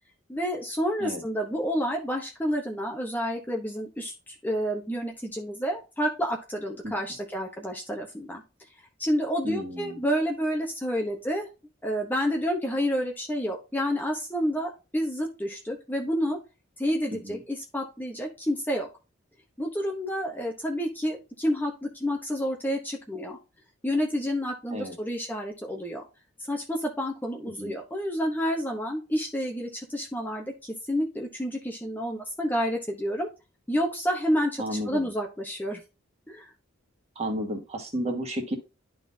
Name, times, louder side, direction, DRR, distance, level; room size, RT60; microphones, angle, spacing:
voice 1, 0.3-8.4 9.0-11.5 11.8-16.4 16.8-18.9 19.6-23.4 23.8-26.0 26.5-33.3 33.7-35.8 36.3-36.5, equal, 10° left, 1 dB, 0.8 m, -29 dB
voice 2, 9.4-10.0 17.1-17.4 24.7-25.0 27.6-27.7 34.6-35.1 37.1-38.5, equal, 30° right, 3 dB, 1.7 m, -32 dB
11.5 x 3.8 x 2.7 m, 0.29 s
head